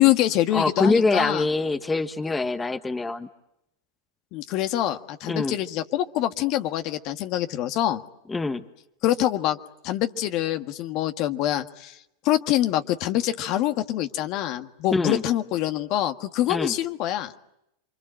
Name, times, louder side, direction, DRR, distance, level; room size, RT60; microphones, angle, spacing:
voice 1, 0.0-1.5 4.3-8.0 9.0-9.6 9.8-12.0 12.2-17.3, left 13 dB, 50° left, 7 dB, 1.8 m, -25 dB
voice 2, 0.5-3.3 5.3-5.6 8.3-8.6 14.9-15.2 16.5-16.7, left 3 dB, 15° left, 9 dB, 1.4 m, -24 dB
29.0 x 25.0 x 7.7 m, 0.82 s
hypercardioid pair, 100°, 0 cm